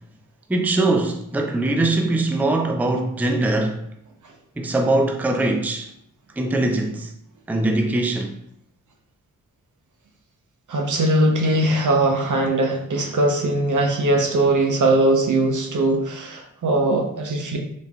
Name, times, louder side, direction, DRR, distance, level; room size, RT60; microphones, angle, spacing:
voice 1, 0.5-3.8 4.6-5.9 6.4-7.1 7.5-8.3, right 2 dB, 5° right, 0.5 m, -22 dB
voice 2, 10.7-17.6, right 1 dB, 60° right, 0.8 m, -20 dB
4.0 x 3.5 x 2.3 m
cardioid pair, 50°, 34 cm